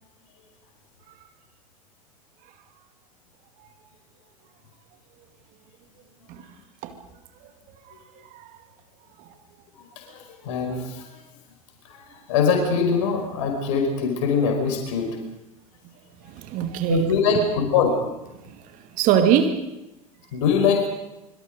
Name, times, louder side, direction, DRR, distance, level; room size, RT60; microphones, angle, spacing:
voice 1, 7.8-8.5 9.2-9.3 16.2-17.5 18.4-19.7, right 9 dB, 50° right, 8 dB, 2.3 m, -24 dB
voice 2, 9.9-11.1 11.9-12.0 12.3-15.1 16.9-18.0 20.3-20.9, left 5 dB, 60° left, 3 dB, 5.1 m, -22 dB
25.0 x 25.0 x 5.3 m, 0.92 s
figure-of-eight pair, 75°, 18 cm